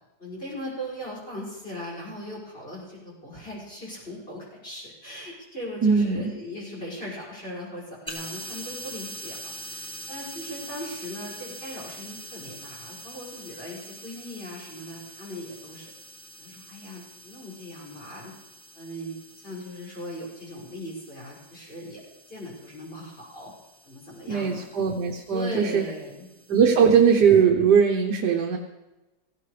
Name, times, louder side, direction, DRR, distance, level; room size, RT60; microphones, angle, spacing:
voice 1, 0.2-15.9 16.4-18.3 18.7-22.0 22.3-23.5 23.8-24.7 25.3-26.3 26.7-26.9, equal, 30° left, -6 dB, 6.4 m, -39 dB
voice 2, 5.8-6.3 24.3-25.8 26.5-28.6, right 6 dB, 65° right, 2 dB, 1.6 m, -20 dB
sound 1, 8.1-27.4, right 1 dB, 5° left, 1.3 m, -44 dB
18.5 x 16.0 x 3.3 m, 1.1 s
omnidirectional pair, 2.0 m